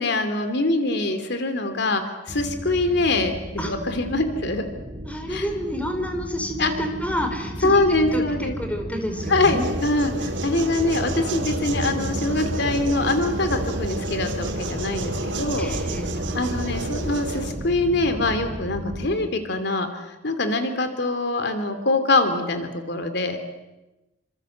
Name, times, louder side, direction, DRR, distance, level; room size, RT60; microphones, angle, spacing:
voice 1, 0.0-4.7 5.3-5.5 6.6-6.7 7.6-8.6 9.3-15.7 16.3-23.4, left 2 dB, 65° left, 8 dB, 2.8 m, -24 dB
sound 1, 2.3-19.1, equal, 50° right, 3.9 m, -34 dB
voice 2, 5.0-7.8 8.1-9.7 15.6-16.1, equal, 10° left, 5 dB, 4.4 m, -29 dB
sound 2, 9.1-17.6, right 2 dB, 80° right, 4.1 m, -30 dB
29.0 x 26.0 x 7.9 m, 1.0 s
head